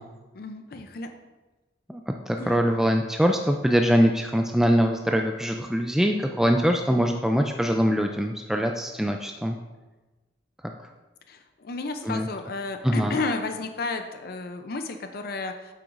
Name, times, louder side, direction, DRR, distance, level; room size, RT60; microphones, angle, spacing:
voice 1, 0.3-1.1 2.4-2.5 11.3-15.5, left 3 dB, 55° left, 6 dB, 0.5 m, -32 dB
voice 2, 1.9-9.6 10.6-10.7 12.0-12.3 12.8-13.2, equal, 5° right, 3 dB, 0.3 m, -23 dB
9.1 x 7.6 x 2.5 m, 1.2 s
head